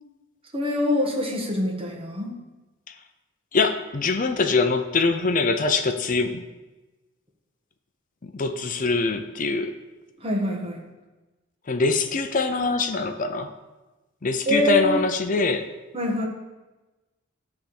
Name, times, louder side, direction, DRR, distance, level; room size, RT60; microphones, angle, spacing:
voice 1, 0.5-2.4 10.2-10.8 14.5-15.0 15.9-16.3, left 1 dB, 25° right, -1 dB, 1.3 m, -24 dB
voice 2, 3.5-6.4 8.2-9.7 11.7-13.5 14.2-15.7, left 3 dB, 40° left, 7 dB, 0.5 m, -23 dB
10.5 x 3.5 x 7.0 m, 1.1 s
head